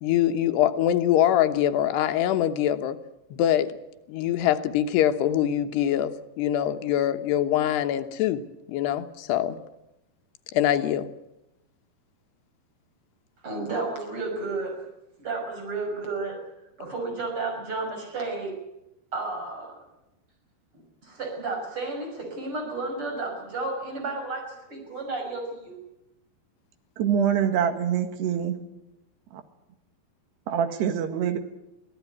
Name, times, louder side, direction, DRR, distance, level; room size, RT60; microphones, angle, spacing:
voice 1, 0.0-3.0 3.3-3.8 4.1-8.4 8.7-9.6 10.5-11.1, left 11 dB, 90° left, 8 dB, 3.3 m, -23 dB
voice 2, 13.4-14.8 15.2-16.4 16.8-18.6 19.1-19.8 20.7-25.8, right 3 dB, 30° right, 2 dB, 6.6 m, -32 dB
voice 3, 27.0-28.6 29.3-29.4 30.5-31.4, right 8 dB, 85° right, 8 dB, 3.9 m, -25 dB
24.0 x 17.0 x 9.6 m, 0.92 s
omnidirectional pair, 4.6 m